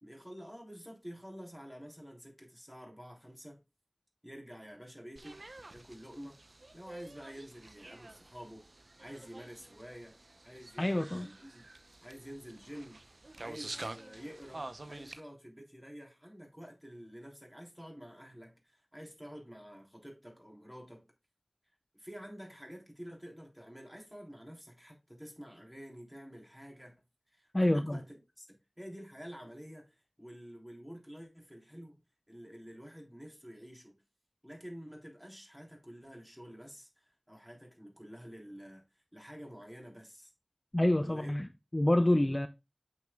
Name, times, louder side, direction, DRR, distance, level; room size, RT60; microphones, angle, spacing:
voice 1, 0.0-3.6 4.2-5.4 5.7-6.4 6.7-8.7 9.0-10.2 10.4-11.6 12.0-13.0 13.4-21.0 21.9-26.9 27.3-32.0 32.3-34.0 34.4-36.9 37.3-38.8 39.1-40.3 41.0-41.3, equal, 5° right, 3.3 m, -49 dB
sound 1, 5.2-15.2, right 2 dB, 70° right, 0.6 m, -48 dB
voice 2, 10.8-11.3 27.5-28.0 40.7-41.5 41.7-42.5, left 1 dB, 35° left, 0.5 m, -27 dB
8.4 x 6.7 x 2.3 m
wide cardioid pair, 50°, 0 cm